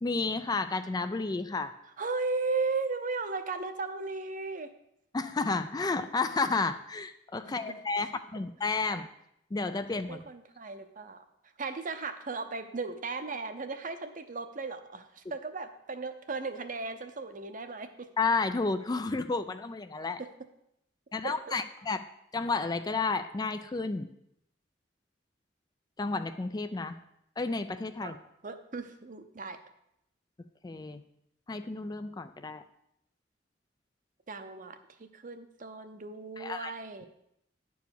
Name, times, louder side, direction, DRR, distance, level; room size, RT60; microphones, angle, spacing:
voice 1, 0.0-1.7 5.1-9.1 9.5-10.2 18.2-20.2 21.1-22.0 22.3-24.1 26.0-27.0 27.4-28.2 30.6-31.0 31.5-32.6 36.4-36.7, left 3 dB, 20° left, 10 dB, 0.4 m, -31 dB
voice 2, 2.0-4.7 7.4-7.8 10.1-11.2 11.6-18.1 20.2-20.3 21.2-21.6 28.0-28.1 28.4-29.6 34.3-37.1, right 4 dB, 45° right, 8 dB, 0.8 m, -36 dB
10.5 x 4.7 x 7.0 m, 0.77 s
head